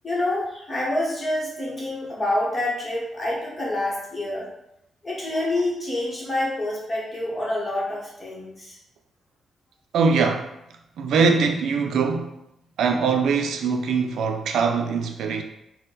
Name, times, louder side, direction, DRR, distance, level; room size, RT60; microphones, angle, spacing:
voice 1, 0.0-4.5 5.0-8.8, left 1 dB, 20° left, 1.0 m, -27 dB
voice 2, 9.9-10.5 11.0-12.3 12.8-15.4, right 5 dB, 75° right, 0.4 m, -22 dB
4.4 x 2.1 x 3.8 m
wide cardioid pair, 160°, 0 cm